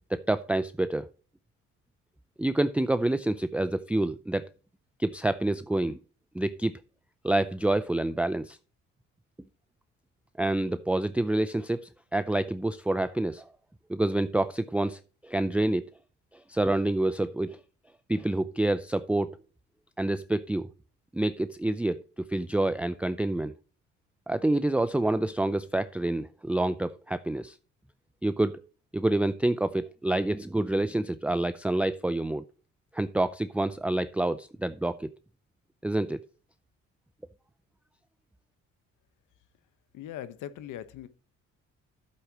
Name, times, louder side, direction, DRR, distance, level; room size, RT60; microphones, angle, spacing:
voice 1, 0.1-1.1 2.4-4.5 5.0-6.0 6.3-6.8 7.2-8.6 10.4-13.5 13.9-15.9 16.5-17.6 18.1-19.4 20.0-20.7 21.1-22.0 22.3-23.5 24.3-27.6 28.2-28.6 28.9-32.4 32.9-35.1 35.8-36.2, right 1 dB, 5° right, 0.4 m, -27 dB
voice 2, 39.9-41.1, left 11 dB, 85° left, 1.1 m, -40 dB
11.5 x 8.1 x 2.9 m
cardioid pair, 90°, 30 cm